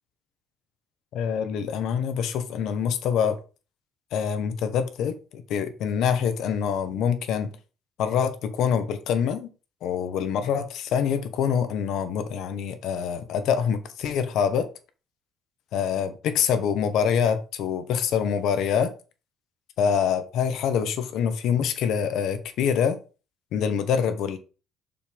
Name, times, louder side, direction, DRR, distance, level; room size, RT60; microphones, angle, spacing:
voice 1, 1.1-3.4 4.1-7.5 8.0-9.5 9.8-14.7 15.7-18.9 19.8-23.0 23.5-24.4, left 7 dB, 65° left, 1.1 m, -25 dB
6.6 x 5.4 x 3.6 m
cardioid pair, 125°, 0 cm